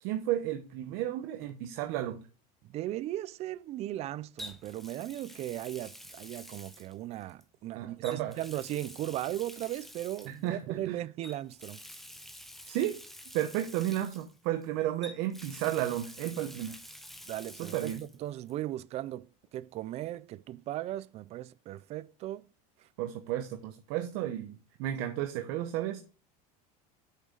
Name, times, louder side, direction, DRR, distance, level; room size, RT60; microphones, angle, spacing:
voice 1, 0.0-2.3 7.8-8.4 10.3-11.0 12.7-13.0 13.3-16.8 17.6-18.0 23.0-26.0, right 12 dB, 55° right, 0.9 m, -33 dB
Water tap faucet, 1.4-1.6 4.4-7.4 8.0-10.5 11.2-14.6 15.0-18.2 18.5-18.6 20.1-20.2, equal, ahead, 0.8 m, -49 dB
voice 2, 2.6-11.8 17.3-17.9 18.2-22.5, right 14 dB, 30° right, 0.4 m, -37 dB
8.6 x 6.3 x 3.8 m
supercardioid pair, 150°, 20 cm